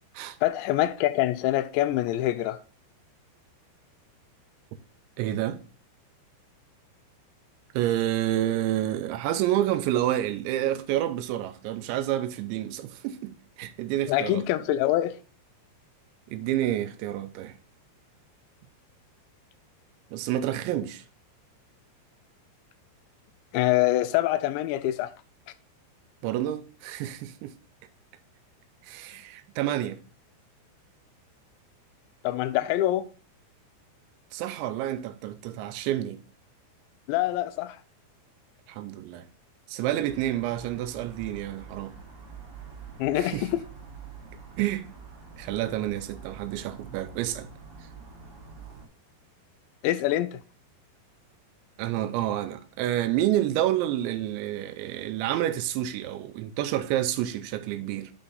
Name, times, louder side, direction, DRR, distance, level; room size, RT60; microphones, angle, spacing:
voice 1, 0.4-2.6 14.1-15.2 23.5-25.1 32.2-33.1 37.1-37.8 43.0-43.6 49.8-50.4, left 14 dB, 85° left, 2.7 m, -25 dB
voice 2, 5.2-5.6 7.7-14.4 16.3-17.6 20.1-21.0 26.2-27.5 28.8-30.0 34.3-36.2 38.7-39.3 39.7-41.9 43.2-43.5 44.6-44.9 45.4-47.5 51.8-58.1, right 13 dB, 85° right, 2.9 m, -29 dB
sound 1, 40.0-48.9, right 5 dB, 40° right, 1.8 m, -46 dB
8.6 x 4.4 x 3.8 m
omnidirectional pair, 5.2 m